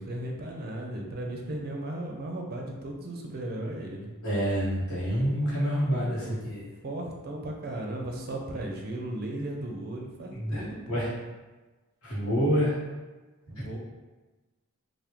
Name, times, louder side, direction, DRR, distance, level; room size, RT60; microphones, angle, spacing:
voice 1, 0.0-4.1 5.9-6.5 6.8-11.0 13.5-13.8, right 1 dB, 45° right, 1 dB, 0.5 m, -36 dB
voice 2, 4.2-6.6 10.3-11.1 12.0-12.8 13.6-13.7, equal, 70° left, -7 dB, 1.2 m, -27 dB
3.4 x 2.2 x 2.9 m, 1.2 s
head